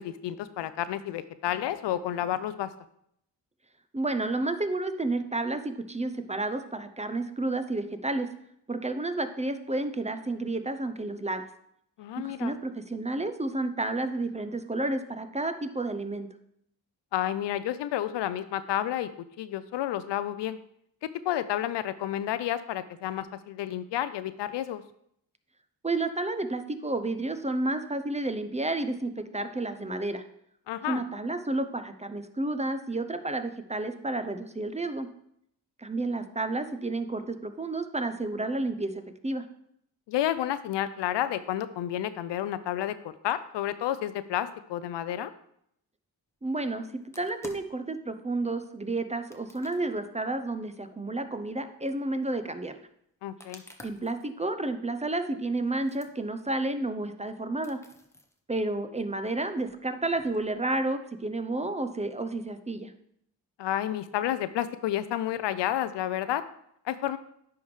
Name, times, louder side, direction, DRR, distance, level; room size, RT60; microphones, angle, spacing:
voice 1, 0.0-2.7 12.0-12.5 17.1-19.1 19.4-20.6 21.0-24.8 30.7-31.0 40.1-45.3 53.2-53.6 63.6-66.4 66.9-67.2, left 12 dB, 75° left, 14 dB, 0.5 m, -30 dB
voice 2, 3.9-8.3 8.7-11.4 12.2-16.3 25.8-30.2 30.9-35.1 35.8-39.4 46.4-46.9 47.2-52.7 53.8-57.8 58.5-62.9, right 2 dB, 15° right, 9 dB, 0.6 m, -31 dB
sound 1, 47.0-47.8 49.3-49.9 50.9-51.0 51.9-52.0 53.4-54.3 55.1-55.2 55.6-56.1 56.6-56.7 57.1-57.2 57.6-58.4 59.1-60.6, left 1 dB, 5° left, 1.0 m, -51 dB
10.0 x 3.5 x 3.2 m, 0.72 s
supercardioid pair, 45°, 43 cm